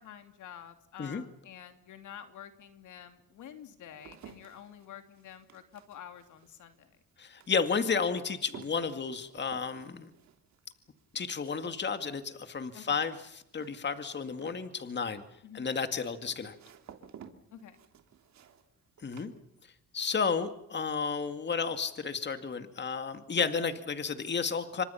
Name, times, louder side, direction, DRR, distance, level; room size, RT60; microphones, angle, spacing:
voice 1, 0.0-7.0 12.7-13.0 15.4-15.7 17.5-17.8, left 9 dB, 80° left, 7 dB, 3.0 m, -49 dB
sound 1, 2.9-20.0 20.3-20.9, right 8 dB, 65° right, 3.2 m, -55 dB
voice 2, 7.2-10.1 11.1-15.2 15.5-16.5 19.0-19.3 19.9-24.8, left 5 dB, 35° left, 9 dB, 2.2 m, -32 dB
29.0 x 25.5 x 5.8 m, 0.75 s
cardioid pair, 90°, 30 cm